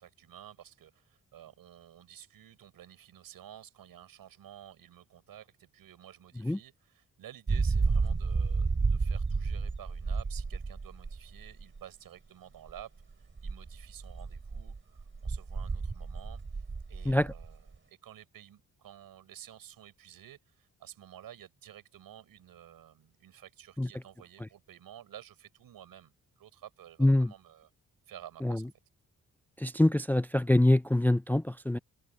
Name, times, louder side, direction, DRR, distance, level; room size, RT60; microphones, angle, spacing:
voice 1, 0.0-12.9 13.2-27.7 28.1-28.7, right 11 dB, 90° right, 6.6 m, -52 dB
sound 1, 7.5-11.8 12.7-12.8 13.4-17.8, right 4 dB, 35° right, 3.6 m, -31 dB
voice 2, 27.0-27.3 28.4-28.6 29.6-31.8, left 1 dB, 5° left, 0.4 m, -25 dB
cardioid pair, 70°, 34 cm